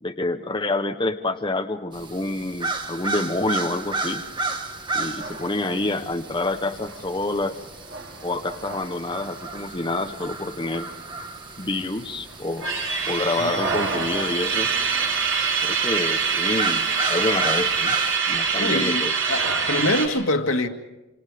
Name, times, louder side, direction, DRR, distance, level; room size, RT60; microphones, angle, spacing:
voice 1, 0.0-4.2 4.9-7.6 8.2-10.9 11.6-12.7 13.1-14.7 15.6-18.0 18.3-19.1, left 2 dB, 20° left, 5 dB, 0.9 m, -27 dB
sound 1, 1.9-18.2, right 3 dB, 20° right, 1.5 m, -33 dB
sound 2, 5.1-10.3 10.5-10.6 10.9-11.8 12.3-20.1, right 5 dB, 75° right, 7.4 m, -26 dB
voice 2, 18.6-20.7, left 1 dB, 70° left, 4 dB, 2.1 m, -24 dB
27.5 x 26.5 x 5.0 m, 1.0 s
head